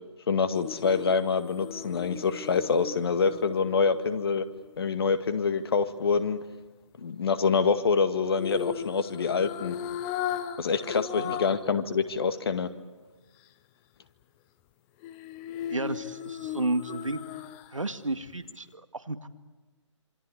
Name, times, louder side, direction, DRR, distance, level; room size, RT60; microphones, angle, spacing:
voice 1, 0.3-4.4 4.8-6.4 7.0-9.8 10.6-12.7, left 5 dB, 50° left, 10 dB, 2.0 m, -26 dB
sound 1, 0.5-4.8 8.3-11.7 12.1-12.2 15.0-17.9 18.3-18.4, left 10 dB, 15° left, 0.8 m, -37 dB
voice 2, 15.7-17.2 17.7-19.3, right 2 dB, 85° right, 10 dB, 2.1 m, -32 dB
27.0 x 26.0 x 8.5 m, 1.2 s
figure-of-eight pair, 145°, 16 cm